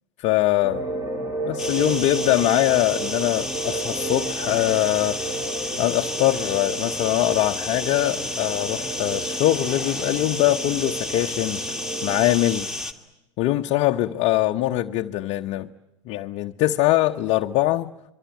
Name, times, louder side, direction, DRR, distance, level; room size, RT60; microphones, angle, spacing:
voice 1, 0.2-0.8 1.4-5.4 5.8-11.6 12.0-12.7 13.4-15.7 16.1-17.9, left 15 dB, 50° left, 0.9 m, -22 dB
sound 1, 0.6-12.4, right 2 dB, 20° right, 3.5 m, -32 dB
sound 2, 1.6-12.9, left 2 dB, 5° right, 2.3 m, -31 dB
26.5 x 23.5 x 9.0 m
hypercardioid pair, 85°, 16 cm